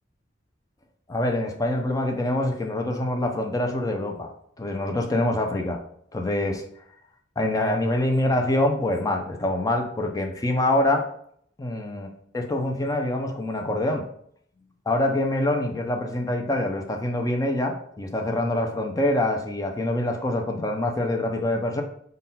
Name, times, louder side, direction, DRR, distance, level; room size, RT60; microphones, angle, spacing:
voice 1, 1.1-4.3 4.6-5.8 6.1-6.6 7.4-11.0 11.6-14.1 14.9-21.8, left 1 dB, 20° left, 3 dB, 0.4 m, -25 dB
3.8 x 2.2 x 4.0 m, 0.65 s
head